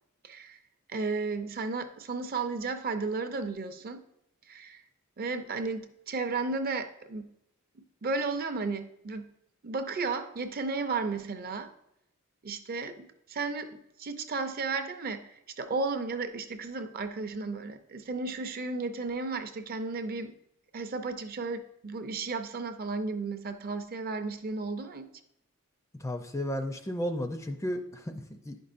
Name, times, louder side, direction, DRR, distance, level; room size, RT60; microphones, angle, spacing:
voice 1, 0.2-0.6 0.9-4.1 4.5-4.8 5.2-7.3 7.8-9.3 9.6-11.7 12.4-20.3 20.7-25.1, right 3 dB, 45° right, 8 dB, 0.5 m, -34 dB
voice 2, 26.0-28.6, equal, 15° left, 6 dB, 0.4 m, -34 dB
10.5 x 5.3 x 2.5 m, 0.80 s
head